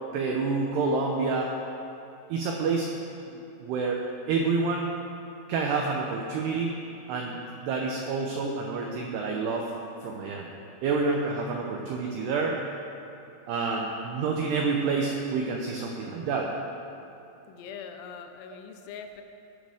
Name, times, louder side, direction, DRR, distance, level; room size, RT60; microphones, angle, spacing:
voice 1, 0.1-1.5 2.3-2.9 3.3-4.9 5.5-6.8 7.1-9.7 10.0-10.5 10.8-12.6 13.5-16.5, right 4 dB, 85° right, 0 dB, 2.3 m, -28 dB
voice 2, 17.5-19.2, left 6 dB, 85° left, 7 dB, 3.4 m, -42 dB
19.0 x 9.1 x 3.6 m, 2.8 s
omnidirectional pair, 5.9 m